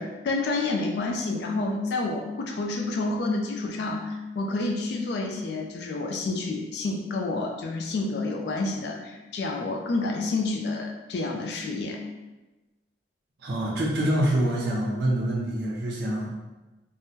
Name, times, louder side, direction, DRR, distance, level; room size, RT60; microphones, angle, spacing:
voice 1, 0.0-12.0, left 3 dB, 60° left, 1 dB, 0.3 m, -29 dB
voice 2, 13.4-16.3, right 1 dB, 60° right, -5 dB, 0.6 m, -26 dB
3.6 x 2.0 x 2.7 m, 1.1 s
head